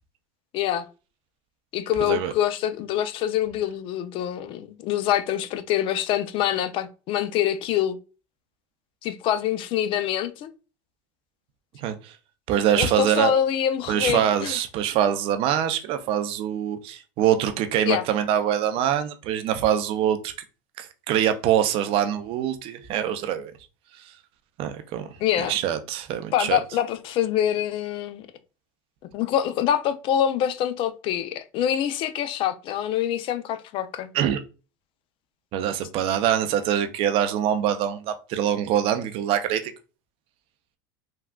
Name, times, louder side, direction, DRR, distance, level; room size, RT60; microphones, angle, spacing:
voice 1, 0.5-0.9 1.7-8.0 9.0-10.5 12.8-14.6 17.9-18.0 25.2-25.6 26.3-28.3 29.1-34.1, left 10 dB, 50° left, 0.4 m, -25 dB
voice 2, 2.0-2.3 11.7-12.1 12.5-13.3 13.9-20.3 20.8-23.5 24.6-25.1 25.5-26.6 34.1-34.4 35.5-39.7, right 10 dB, 55° right, 0.5 m, -24 dB
3.5 x 2.3 x 2.2 m
hypercardioid pair, 95°, 11 cm